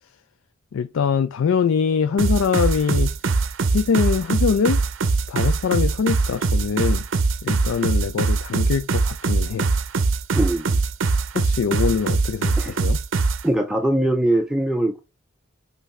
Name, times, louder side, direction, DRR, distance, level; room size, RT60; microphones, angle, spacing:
voice 1, 0.7-3.4 3.7-4.8 5.3-7.0 7.4-9.7 11.3-13.0, left 6 dB, 80° left, 0.4 m, -23 dB
sound 1, 2.2-13.4, right 3 dB, 70° right, 0.5 m, -22 dB
voice 2, 10.3-10.8 12.6-12.8 13.4-15.0, right 1 dB, 5° right, 0.4 m, -21 dB
5.7 x 2.7 x 3.1 m
head